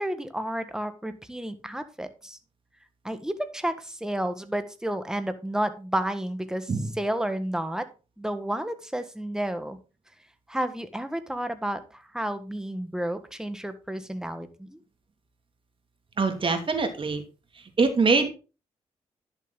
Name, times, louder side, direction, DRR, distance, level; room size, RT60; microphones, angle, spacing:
voice 1, 0.0-2.4 3.0-7.9 8.2-9.8 10.5-14.8, right 1 dB, 5° right, 10 dB, 1.5 m, -31 dB
voice 2, 16.2-17.2 17.8-18.3, right 4 dB, 45° right, 6 dB, 2.4 m, -23 dB
11.0 x 7.1 x 3.9 m, 0.32 s
cardioid pair, 65°, 12 cm